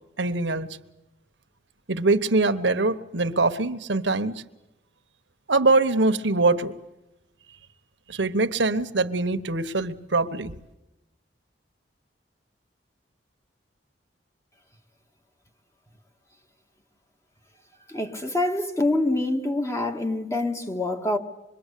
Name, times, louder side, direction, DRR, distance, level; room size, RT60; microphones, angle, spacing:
voice 1, 0.2-0.7 1.9-4.3 5.5-6.8 8.1-10.5, right 3 dB, 70° right, 1.3 m, -23 dB
voice 2, 17.9-21.2, left 2 dB, 15° left, 2.0 m, -25 dB
26.0 x 23.0 x 8.4 m
head